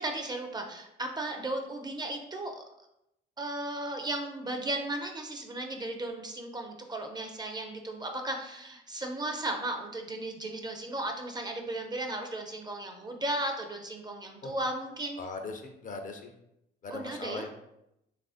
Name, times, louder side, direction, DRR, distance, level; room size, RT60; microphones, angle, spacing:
voice 1, 0.0-2.6 3.4-15.2 16.9-17.5, right 1 dB, 20° right, 3 dB, 0.4 m, -35 dB
voice 2, 15.2-16.2 16.8-17.5, left 3 dB, 40° left, 5 dB, 0.4 m, -39 dB
3.1 x 2.5 x 2.4 m, 0.83 s
cardioid pair, 90°, 20 cm